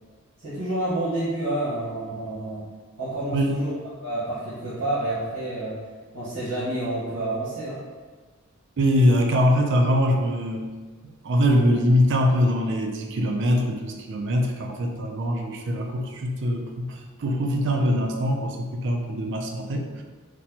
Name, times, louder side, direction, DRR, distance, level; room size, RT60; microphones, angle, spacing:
voice 1, 0.4-2.6 3.0-3.7 4.0-5.8 6.1-7.8, right 1 dB, 80° right, -12 dB, 1.1 m, -29 dB
voice 2, 8.8-10.6 11.0-20.0, equal, 55° right, 3 dB, 0.4 m, -23 dB
4.1 x 2.1 x 2.8 m, 1.4 s
head